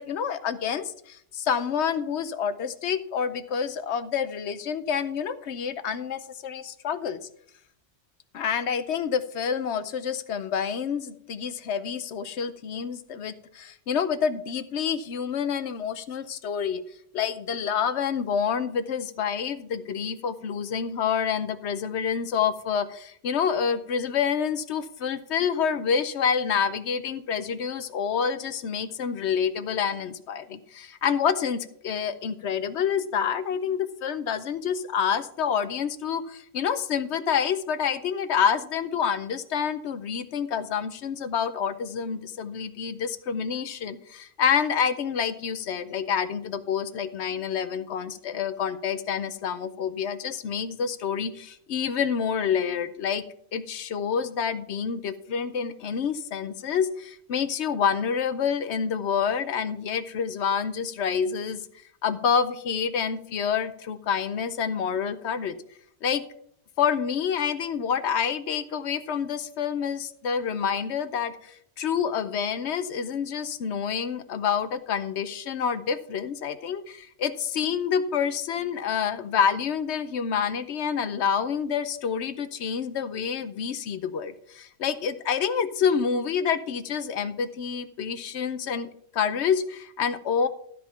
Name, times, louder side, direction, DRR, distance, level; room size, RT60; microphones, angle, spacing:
voice 1, 0.0-7.2 8.3-16.8 17.1-53.2 53.5-61.6 62.0-65.6 66.0-66.2 66.8-88.9 89.1-90.5, left 7 dB, 70° left, 12 dB, 0.9 m, -28 dB
12.5 x 5.1 x 5.7 m, 0.69 s
omnidirectional pair, 1.3 m